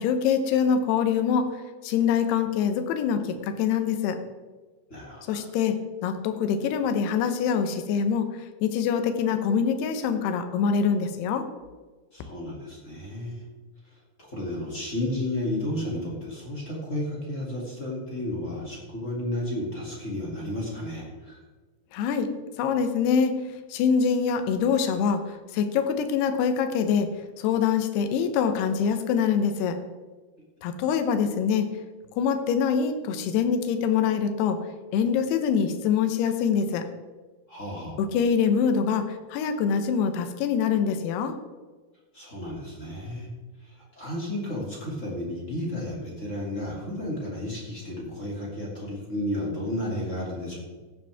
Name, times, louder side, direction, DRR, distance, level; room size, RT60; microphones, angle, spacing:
voice 1, 0.0-1.5 1.8-4.2 5.3-11.5 21.9-22.3 22.6-23.3 23.7-27.1 27.4-29.8 30.6-31.7 32.2-34.6 34.9-36.9 38.0-41.3, left 7 dB, 80° left, 8 dB, 3.0 m, -24 dB
voice 2, 4.9-5.4 12.1-13.4 14.2-21.4 37.5-38.0 42.1-43.3 43.6-50.6, left 1 dB, 20° left, -4 dB, 2.5 m, -32 dB
15.5 x 10.0 x 3.5 m, 1.3 s
omnidirectional pair, 4.8 m